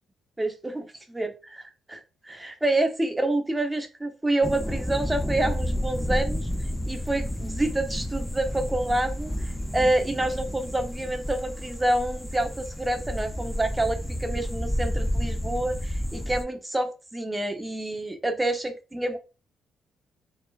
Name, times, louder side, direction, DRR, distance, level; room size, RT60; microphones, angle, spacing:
voice 1, 0.4-0.8 1.1-6.5 6.9-19.2, right 1 dB, 15° right, 5 dB, 0.9 m, -28 dB
sound 1, 4.4-16.4, equal, 5° left, 0.5 m, -31 dB
4.3 x 3.8 x 2.4 m, 0.31 s
cardioid pair, 90°, 0 cm